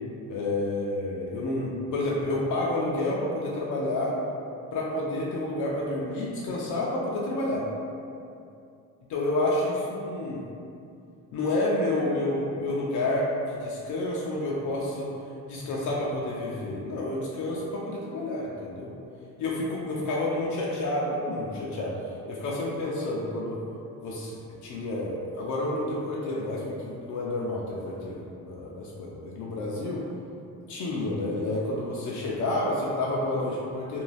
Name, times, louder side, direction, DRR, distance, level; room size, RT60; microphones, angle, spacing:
voice 1, 0.3-4.2 4.7-7.7 9.1-10.4 11.3-15.1 15.5-18.9 19.4-22.0 22.3-23.6 24.0-30.0 30.7-34.0, left 2 dB, 55° left, -4 dB, 0.5 m, -29 dB
2.6 x 2.3 x 3.2 m, 2.6 s
cardioid pair, 105°, 36 cm